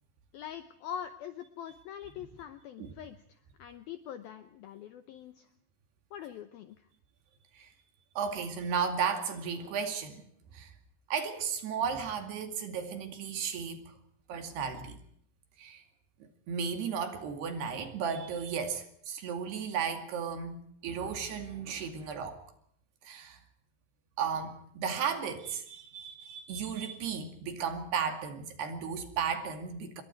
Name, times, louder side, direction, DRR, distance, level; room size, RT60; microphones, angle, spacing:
voice 1, 0.3-5.5 6.1-6.9, left 9 dB, 75° left, 2.2 m, -43 dB
voice 2, 8.2-10.2 10.5-10.7 11.1-14.0 14.3-15.0 15.6-15.8 16.5-22.4 23.0-23.4 24.2-30.0, right 6 dB, 60° right, 4.3 m, -34 dB
27.5 x 22.0 x 4.6 m
omnidirectional pair, 5.5 m